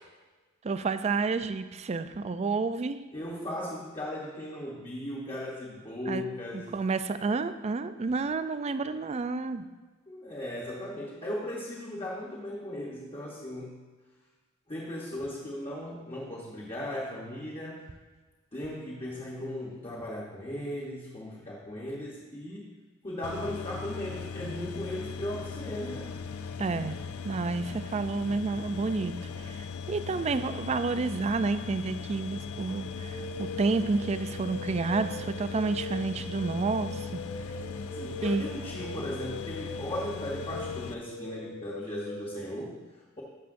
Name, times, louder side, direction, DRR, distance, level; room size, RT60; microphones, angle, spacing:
voice 1, 0.6-3.0 6.1-6.2 6.5-9.7 26.6-27.0 27.2-37.2 38.2-38.4, right 4 dB, 30° right, 11 dB, 0.3 m, -30 dB
voice 2, 3.1-6.7 10.1-13.8 14.7-17.8 18.5-22.7 23.0-26.2 30.1-30.3 37.9-43.2, left 1 dB, 25° left, -4 dB, 1.0 m, -37 dB
sound 1, 23.2-40.9, left 5 dB, 90° left, 0.4 m, -39 dB
sound 2, 32.8-42.4, left 2 dB, 70° left, 2.5 m, -41 dB
12.0 x 6.9 x 2.6 m, 1.3 s
head